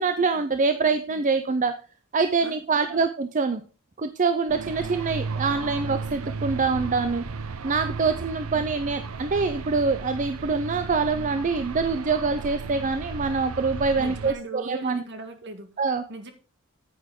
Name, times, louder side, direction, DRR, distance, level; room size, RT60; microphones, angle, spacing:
voice 1, 0.0-1.7 2.1-3.6 4.0-7.3 7.6-15.0 15.8-16.0, right 4 dB, 35° right, 10 dB, 0.6 m, -25 dB
voice 2, 2.4-3.0 14.0-15.7 16.1-16.3, right 3 dB, 55° right, 7 dB, 1.8 m, -40 dB
sound 1, 4.5-14.3, right 4 dB, 75° right, 0.7 m, -34 dB
9.3 x 8.9 x 3.7 m, 0.36 s
head